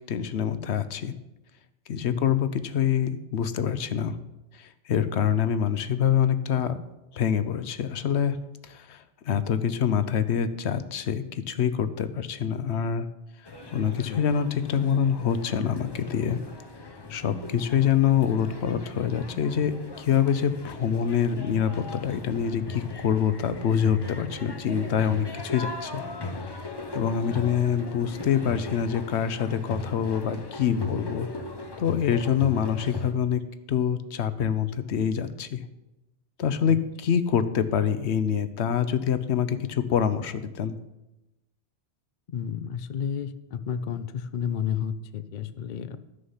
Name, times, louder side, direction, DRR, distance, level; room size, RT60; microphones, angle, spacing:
voice 1, 0.1-1.1 1.9-4.1 4.9-6.8 7.1-8.4 8.7-9.0 9.3-13.1 13.7-16.4 17.1-26.0 26.9-31.3 31.8-33.4 33.7-35.6 36.4-40.8, left 8 dB, 70° left, 12 dB, 0.9 m, -25 dB
sound 1, 13.5-33.1, left 3 dB, 25° left, 0.8 m, -38 dB
voice 2, 17.5-17.9 30.7-31.0 36.7-36.8 42.3-46.0, left 8 dB, 55° left, 12 dB, 0.6 m, -32 dB
12.5 x 6.6 x 5.6 m, 0.96 s
omnidirectional pair, 1.2 m